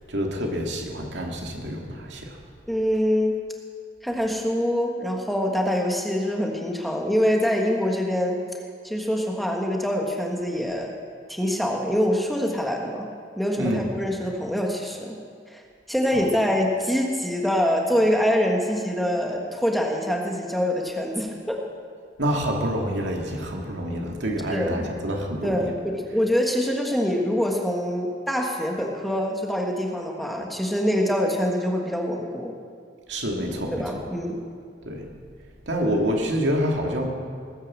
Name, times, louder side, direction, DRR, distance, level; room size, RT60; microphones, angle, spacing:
voice 1, 0.1-2.4 13.6-13.9 16.1-16.2 22.2-25.6 33.1-34.0 34.8-35.1 35.7-37.1, equal, 75° right, 1 dB, 2.4 m, -27 dB
voice 2, 2.7-3.4 4.0-8.4 8.8-11.0 11.3-13.1 13.4-15.2 15.5-15.6 15.9-21.6 24.5-24.9 25.4-32.5 33.7-34.4, equal, ahead, 0 dB, 1.5 m, -25 dB
19.0 x 9.5 x 7.5 m, 2.1 s
head